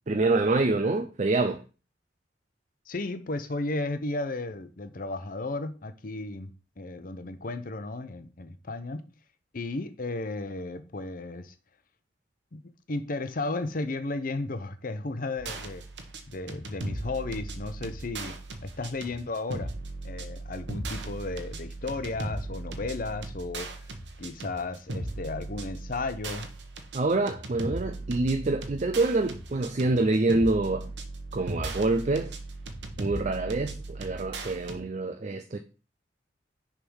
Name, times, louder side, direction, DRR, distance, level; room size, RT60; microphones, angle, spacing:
voice 1, 0.1-1.6 26.9-30.9 31.3-32.3 33.0-35.6, right 2 dB, 40° right, 0.5 m, -26 dB
voice 2, 2.9-9.1 9.5-11.5 12.5-15.9 16.3-19.7 20.0-26.5, left 2 dB, 50° left, 0.8 m, -34 dB
sound 1, 15.4-34.8, right 2 dB, 80° right, 1.1 m, -38 dB
6.7 x 3.7 x 6.2 m
head